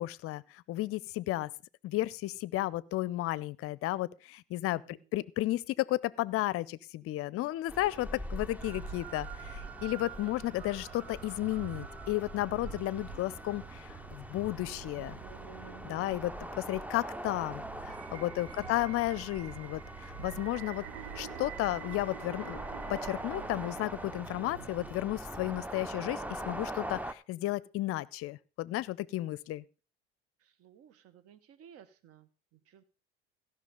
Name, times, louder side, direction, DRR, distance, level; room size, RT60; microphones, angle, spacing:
voice 1, 0.0-1.5 1.8-15.2 15.8-20.9 21.2-22.6 22.9-29.6, left 17 dB, 45° left, 0.6 m, -33 dB
sound 1, 7.7-27.1, right 1 dB, 5° right, 0.6 m, -43 dB
sound 2, 8.6-24.9, right 11 dB, 80° right, 0.8 m, -47 dB
voice 2, 30.4-32.8, right 9 dB, 45° right, 1.1 m, -58 dB
15.5 x 6.0 x 5.1 m
hypercardioid pair, 70°, 31 cm